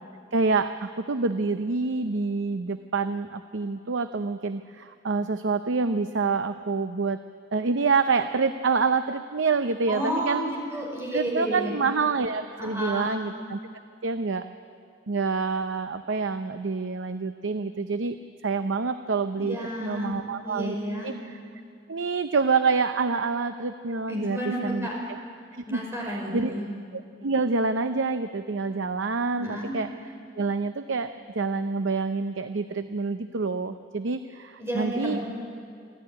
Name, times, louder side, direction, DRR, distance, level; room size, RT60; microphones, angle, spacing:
voice 1, 0.3-7.2 7.5-10.4 11.1-13.6 14.0-14.5 15.1-18.2 18.4-20.8 21.0-21.4 21.9-24.9 25.7-26.5 26.9-29.9 30.4-35.2, right 4 dB, 90° right, 9 dB, 0.7 m, -27 dB
voice 2, 9.9-11.7 12.6-13.1 19.4-21.1 24.1-24.9 25.6-26.7 29.4-29.7 34.6-35.2, right 1 dB, 15° right, -2 dB, 5.4 m, -31 dB
28.0 x 12.0 x 9.8 m, 2.3 s
head